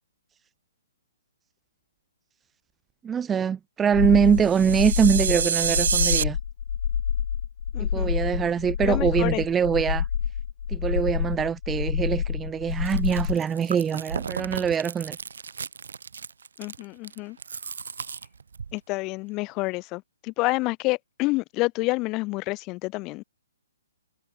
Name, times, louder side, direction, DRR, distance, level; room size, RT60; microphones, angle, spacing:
voice 1, 3.0-6.4 7.8-10.1 10.7-15.2, right 7 dB, 10° right, 0.4 m, -23 dB
sound 1, 3.9-13.4, left 8 dB, 60° left, 0.5 m, -27 dB
sound 2, 4.4-6.2, right 7 dB, 60° right, 0.5 m, -26 dB
voice 2, 7.7-8.1 8.8-9.4 16.6-17.4 18.7-23.2, left 23 dB, 20° left, 0.7 m, -28 dB
Chewing mastication, 12.7-18.8, right 6 dB, 80° right, 2.3 m, -36 dB
hypercardioid pair, 160°, 0 cm